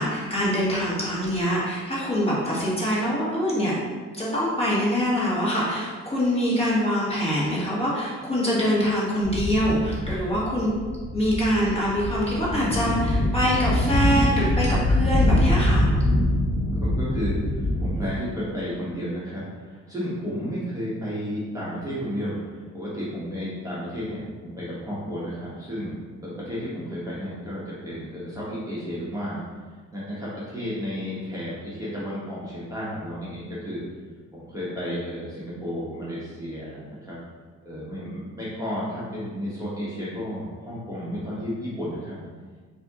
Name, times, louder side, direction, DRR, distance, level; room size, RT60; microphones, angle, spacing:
voice 1, 0.0-3.7 4.1-10.7 11.1-15.8, equal, 20° left, -7 dB, 1.5 m, -24 dB
sound 1, 9.2-18.0, left 1 dB, 40° left, 1.2 m, -24 dB
voice 2, 15.2-15.8 16.7-26.0 26.2-29.4 29.9-33.8 34.3-37.1 37.6-42.2, equal, 10° right, -9 dB, 1.1 m, -32 dB
4.3 x 2.8 x 3.6 m, 1.5 s
cardioid pair, 90°, 30 cm